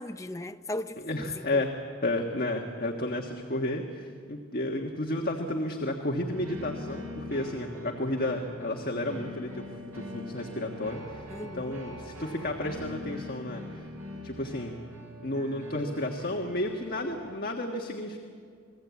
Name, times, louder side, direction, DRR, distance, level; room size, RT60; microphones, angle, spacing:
voice 1, 0.0-1.6 11.3-11.8, left 1 dB, 15° left, 0.6 m, -37 dB
voice 2, 1.0-1.7 2.0-9.6 9.9-13.9 14.2-14.8 15.2-18.2, left 1 dB, 45° left, 1.5 m, -32 dB
sound 1, 6.3-17.2, left 1 dB, 80° right, 7.4 m, -42 dB
28.5 x 21.0 x 8.3 m
head